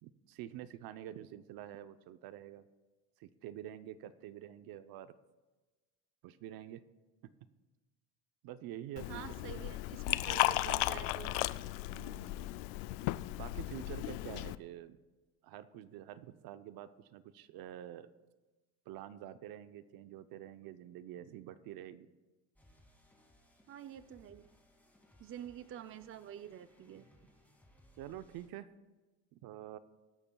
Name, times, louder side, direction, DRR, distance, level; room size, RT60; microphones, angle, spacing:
voice 1, 0.0-2.6 3.2-5.2 6.2-6.8 8.4-9.2 9.5-9.7 11.9-12.5 13.4-15.0 15.4-18.1 18.9-22.1 28.0-28.7 29.3-29.8, right 12 dB, 65° right, 12 dB, 0.8 m, -47 dB
Liquid, 9.0-14.6, left 18 dB, 85° left, 0.5 m, -35 dB
voice 2, 9.1-11.4 23.7-24.4 25.2-27.0, right 10 dB, 35° right, 11 dB, 0.5 m, -48 dB
sound 1, 22.6-28.5, left 1 dB, 5° left, 2.4 m, -65 dB
22.5 x 11.5 x 2.3 m, 1.2 s
supercardioid pair, 105°, 40 cm